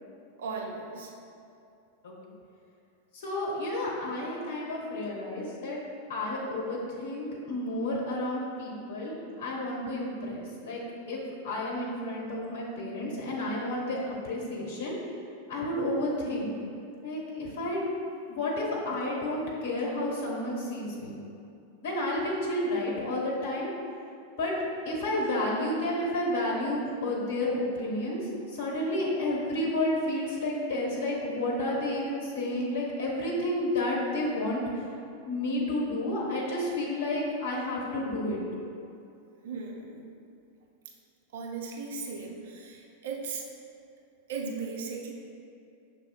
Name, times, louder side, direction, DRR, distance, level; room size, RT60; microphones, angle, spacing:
voice 1, 0.4-1.1 39.4-40.1 41.3-43.5 44.3-45.1, right 4 dB, 55° right, 0 dB, 0.5 m, -37 dB
voice 2, 3.1-5.8 6.1-10.8 11.1-11.2 11.4-14.9 15.5-16.5 17.0-17.8 18.3-21.2 21.8-23.7 24.4-24.5 24.8-34.9 35.3-38.4, left 1 dB, 55° left, -3 dB, 1.1 m, -31 dB
6.5 x 3.3 x 2.3 m, 2.6 s
figure-of-eight pair, 90°, 0 cm